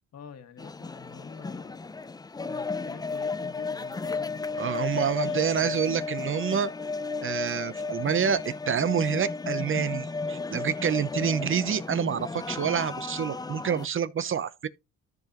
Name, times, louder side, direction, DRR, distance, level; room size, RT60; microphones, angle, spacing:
voice 1, 0.1-1.9 2.4-4.6 5.3-5.8, left 7 dB, 60° left, 1.8 m, -47 dB
sound 1, 0.6-13.9, left 4 dB, 15° left, 0.4 m, -33 dB
voice 2, 4.6-6.7 7.2-14.7, right 7 dB, 45° right, 0.8 m, -28 dB
13.5 x 4.7 x 3.0 m
cardioid pair, 90°, 30 cm